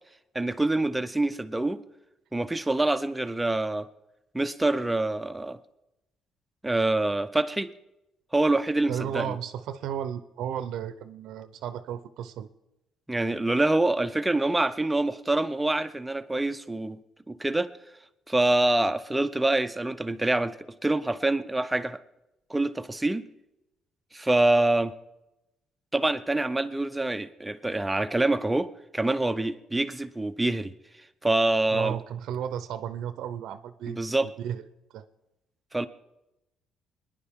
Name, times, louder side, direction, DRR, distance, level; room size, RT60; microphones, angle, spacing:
voice 1, 0.3-1.8 2.3-3.9 4.3-5.6 6.6-7.7 8.3-9.3 13.1-17.0 17.3-17.7 18.3-20.6 20.8-22.0 22.5-23.2 24.1-24.9 25.9-30.7 31.2-32.0 33.9-34.3 35.7-35.9, right 2 dB, 10° right, 10 dB, 0.6 m, -25 dB
voice 2, 8.9-12.5 31.7-34.6 34.9-35.0, right 9 dB, 75° right, 12 dB, 0.6 m, -34 dB
24.5 x 10.5 x 3.6 m, 0.94 s
cardioid pair, 135°, 0 cm